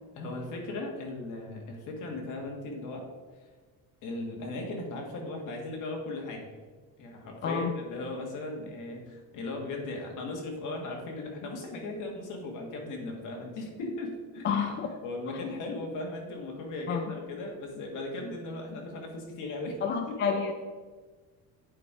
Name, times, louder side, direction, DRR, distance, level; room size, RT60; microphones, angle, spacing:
voice 1, 0.1-3.1 4.0-6.5 7.0-20.4, left 2 dB, 55° left, 1 dB, 1.7 m, -37 dB
voice 2, 14.4-14.9 16.9-17.1 19.8-20.5, left 6 dB, 30° left, 5 dB, 0.4 m, -29 dB
8.3 x 5.1 x 4.8 m, 1.4 s
cardioid pair, 180°, 37 cm